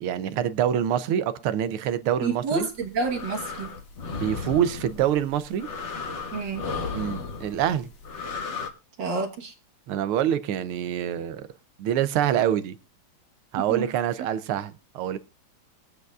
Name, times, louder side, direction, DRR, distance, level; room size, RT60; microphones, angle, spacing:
voice 1, 0.0-2.7 4.1-5.7 6.9-7.9 9.9-11.5 11.8-12.8 13.5-15.2, right 10 dB, 85° right, 1.7 m, -26 dB
voice 2, 2.2-3.7 6.3-6.6 9.0-9.5 13.6-13.9, right 4 dB, 60° right, 2.0 m, -29 dB
sound 1, 2.6-8.7, left 4 dB, 40° left, 1.1 m, -35 dB
23.0 x 8.0 x 2.4 m
omnidirectional pair, 2.4 m